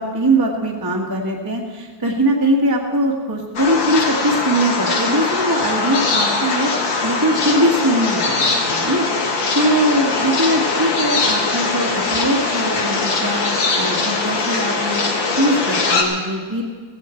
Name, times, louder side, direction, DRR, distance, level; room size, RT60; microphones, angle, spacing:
voice 1, 0.0-9.0 9.5-15.0 15.4-16.6, right 1 dB, 10° right, -1 dB, 1.6 m, -21 dB
sound 1, 3.6-16.0, left 3 dB, 85° left, 2.5 m, -21 dB
16.5 x 16.5 x 4.5 m, 1.6 s
omnidirectional pair, 2.0 m